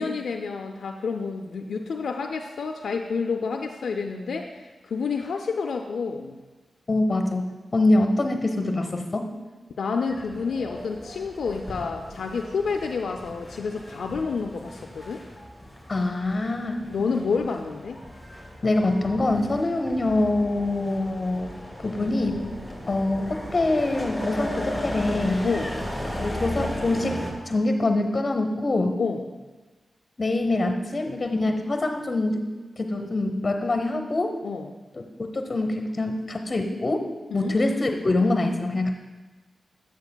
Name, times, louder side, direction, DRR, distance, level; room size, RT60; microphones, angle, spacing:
voice 1, 0.0-6.4 9.8-15.2 16.9-18.0 22.0-22.1 25.4-25.8 29.0-29.2 34.4-34.7 37.3-37.6, left 5 dB, 85° left, 3 dB, 0.3 m, -29 dB
voice 2, 6.9-9.3 15.9-16.8 18.6-21.5 21.8-22.4 22.9-25.5 26.2-27.2 27.5-29.0 30.2-32.4 32.8-34.4 34.9-38.9, left 2 dB, 45° left, 5 dB, 0.8 m, -24 dB
sound 1, 10.1-27.3, left 1 dB, 5° left, 2.5 m, -36 dB
9.5 x 8.1 x 2.2 m, 1.3 s
cardioid pair, 50°, 0 cm